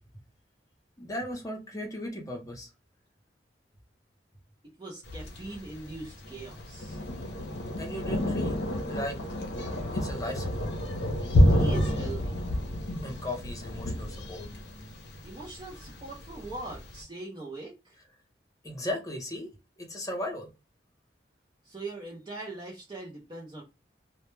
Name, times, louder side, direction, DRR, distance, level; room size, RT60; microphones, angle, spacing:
voice 1, 1.0-2.7 7.8-8.6 8.9-9.2 10.0-10.7 13.0-14.5 18.6-19.5 19.8-20.5, left 1 dB, 20° left, 0.6 m, -36 dB
voice 2, 4.8-7.0 11.5-12.5 15.2-18.0 21.6-23.6, right 2 dB, 25° right, 0.5 m, -41 dB
Thunder, 5.1-17.0, left 1 dB, 65° left, 0.6 m, -29 dB
2.1 x 2.1 x 3.0 m
head